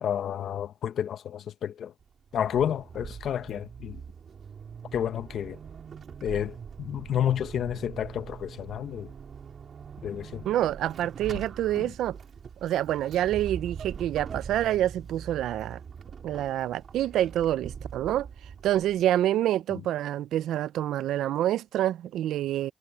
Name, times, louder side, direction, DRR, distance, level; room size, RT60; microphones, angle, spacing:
voice 1, 0.0-1.9 2.3-4.0 4.9-5.6 6.2-9.1 10.0-10.5 11.3-11.4 11.7-11.9 19.7-19.8, left 9 dB, 65° left, 0.9 m, -30 dB
Vehicle / Accelerating revving vroom / Squeak, 2.0-19.2, right 6 dB, 50° right, 2.2 m, -43 dB
voice 2, 10.4-12.2 12.6-15.8 16.2-18.3 18.6-22.7, right 12 dB, 80° right, 0.5 m, -27 dB
cardioid pair, 90°, 0 cm